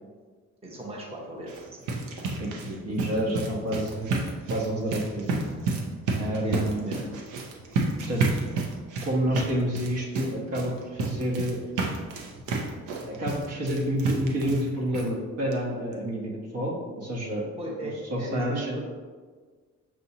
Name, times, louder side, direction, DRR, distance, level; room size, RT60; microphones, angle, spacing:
voice 1, 0.6-1.8 6.4-7.2 17.6-17.9 18.2-18.8, right 1 dB, 20° right, -3 dB, 0.8 m, -37 dB
sound 1, 1.4-14.7 14.9-15.1 15.5-15.6 15.9-16.0, right 3 dB, 90° right, 0.7 m, -31 dB
voice 2, 2.4-4.2 4.5-5.4 6.2-6.9 8.0-8.4 9.0-11.6 13.1-17.5 17.8-18.7, right 1 dB, 60° right, -2 dB, 1.0 m, -29 dB
5.9 x 2.7 x 2.7 m, 1.5 s
cardioid pair, 90°, 30 cm